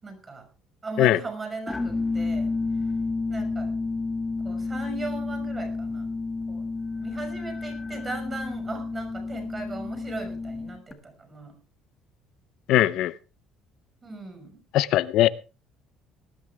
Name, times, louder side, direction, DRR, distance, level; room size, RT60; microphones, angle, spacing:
voice 1, 0.0-0.5 0.8-2.5 3.3-3.7 4.4-6.1 6.5-6.7 7.0-11.6 14.0-14.6, right 3 dB, 25° right, 7 dB, 5.6 m, -37 dB
sound 1, 1.7-10.9, left 3 dB, 15° left, 2.0 m, -30 dB
voice 2, 12.7-13.1 14.7-15.3, left 14 dB, 70° left, 17 dB, 0.7 m, -20 dB
19.0 x 12.0 x 3.5 m, 0.32 s
cardioid pair, 125°, 0 cm